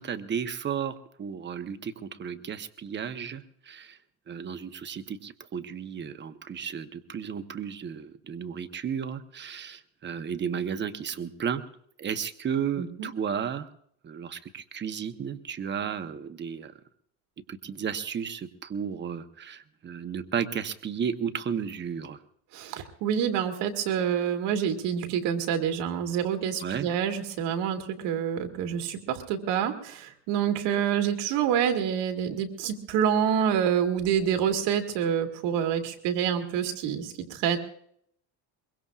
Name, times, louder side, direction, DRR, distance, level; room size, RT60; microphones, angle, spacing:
voice 1, 0.0-4.0 4.3-11.6 12.0-13.7 14.0-16.7 17.5-22.2 26.6-26.9, right 7 dB, 25° right, 9 dB, 0.9 m, -33 dB
voice 2, 12.8-13.1 22.5-37.6, right 8 dB, 85° right, 5 dB, 2.3 m, -27 dB
23.0 x 22.5 x 2.4 m, 0.68 s
cardioid pair, 155°, 41 cm